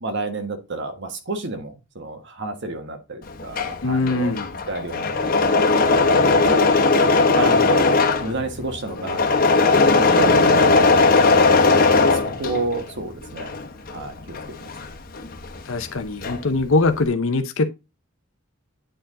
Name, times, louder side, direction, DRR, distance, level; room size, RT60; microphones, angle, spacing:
voice 1, 0.0-4.3 4.7-7.9 8.2-9.2 9.7-11.1 11.8-13.6 13.9-14.7, right 2 dB, 60° right, 1.4 m, -30 dB
Engine / Mechanisms, 3.3-12.9 13.2-15.6 15.9-16.6, left 3 dB, 45° left, 1.1 m, -18 dB
voice 2, 3.8-4.6 11.1-11.6 15.6-17.7, left 3 dB, 65° left, 0.7 m, -23 dB
8.9 x 4.6 x 3.7 m
head